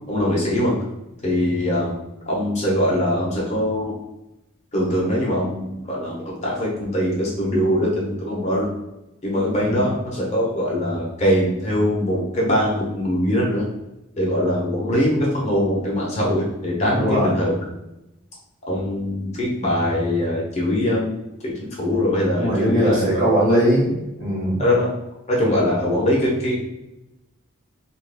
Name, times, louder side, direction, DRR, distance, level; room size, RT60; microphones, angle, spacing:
voice 1, 0.1-0.7 1.2-1.9 2.3-3.9 4.7-8.7 9.2-13.7 14.2-17.5 18.7-21.2 21.4-21.5 21.8-23.1 23.5-23.6 24.6-24.9 25.3-26.7, left 1 dB, 30° left, -4 dB, 0.8 m, -22 dB
voice 2, 9.6-9.9 16.9-17.3 22.3-23.9 24.2-24.6, equal, 35° right, -5 dB, 1.3 m, -20 dB
3.0 x 2.5 x 3.4 m, 0.93 s
head